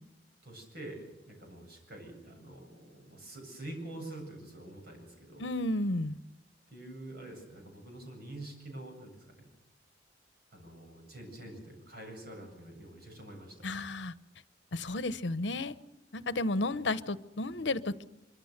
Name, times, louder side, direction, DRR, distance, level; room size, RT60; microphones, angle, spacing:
voice 1, 0.4-5.4 6.7-9.5 10.5-13.7, right 1 dB, 60° right, 3 dB, 8.0 m, -46 dB
voice 2, 5.4-6.2 13.6-14.1 14.7-15.7 16.1-18.1, left 2 dB, 85° left, 15 dB, 0.9 m, -32 dB
24.5 x 24.5 x 6.7 m, 0.89 s
head